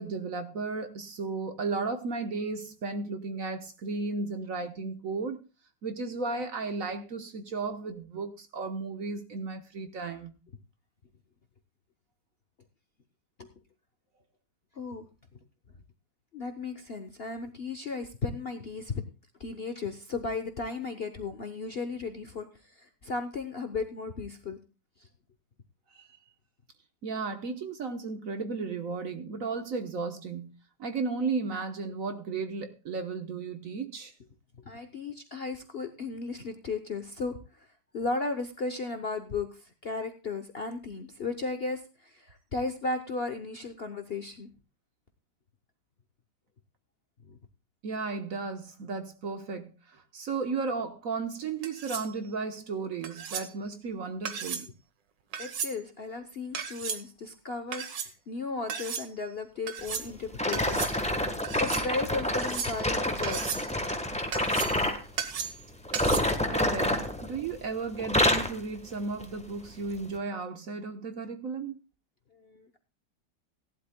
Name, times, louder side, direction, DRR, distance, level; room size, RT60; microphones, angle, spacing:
voice 1, 0.0-5.4 5.8-10.3 25.9-26.1 27.0-34.1 47.8-54.7 66.5-71.8, right 4 dB, 50° right, 1.4 m, -34 dB
voice 2, 14.7-15.1 16.3-19.0 19.4-24.6 34.7-37.7 37.9-44.5 47.3-47.4 55.4-60.8 61.2-63.4 72.3-72.8, left 3 dB, 45° left, 0.9 m, -35 dB
sound 1, 51.6-52.1 53.0-53.5 54.3-54.7 55.3-55.7 56.5-57.0 57.7-58.1 58.7-59.1 59.7-60.1 60.5-61.0 61.4-61.9 62.3-62.9 63.2-63.7 64.3-64.8 65.2-65.6 65.9-66.2, right 7 dB, 80° right, 1.8 m, -35 dB
sound 2, 60.4-65.0 65.8-67.6 67.9-68.6 69.2-69.4 70.0-70.1, left 1 dB, 5° left, 0.9 m, -28 dB
17.5 x 12.0 x 2.2 m
omnidirectional pair, 2.0 m